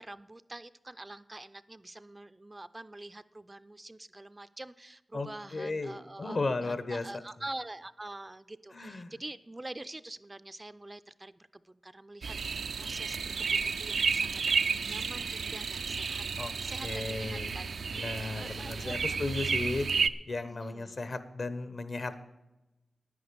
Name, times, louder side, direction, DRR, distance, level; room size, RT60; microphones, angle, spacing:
voice 1, 0.0-16.2 16.6-19.0 20.4-21.1, right 2 dB, 25° right, 13 dB, 0.4 m, -46 dB
voice 2, 5.1-7.1 8.7-9.1 16.4-16.5 16.8-19.9 20.3-22.3, left 3 dB, 60° left, 12 dB, 1.0 m, -35 dB
sound 1, 12.2-20.1, right 5 dB, 90° right, 0.4 m, -32 dB
9.8 x 9.8 x 6.9 m, 0.99 s
wide cardioid pair, 80°, 0 cm